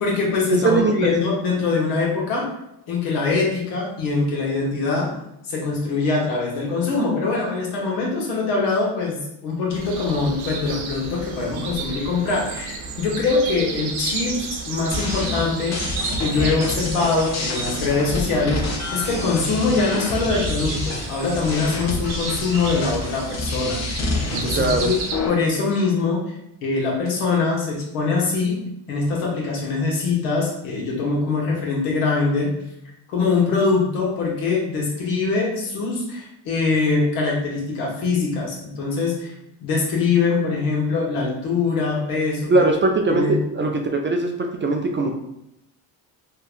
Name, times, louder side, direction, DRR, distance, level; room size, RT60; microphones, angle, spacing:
voice 1, 0.0-2.5 2.9-5.2 5.4-15.8 16.2-24.9 25.3-26.3 26.6-28.6 28.9-32.5 33.1-39.3 39.6-42.5 43.1-43.4, left 4 dB, 85° left, -3 dB, 1.1 m, -23 dB
voice 2, 0.5-1.1 24.6-24.9 42.5-44.3 44.6-45.1, right 2 dB, 25° right, 2 dB, 0.3 m, -20 dB
sound 1, 9.7-25.2, right 4 dB, 70° right, 0.7 m, -33 dB
sound 2, 14.9-25.3, left 2 dB, 30° left, 0.7 m, -28 dB
3.6 x 2.2 x 2.4 m, 0.82 s
supercardioid pair, 55°, 50 cm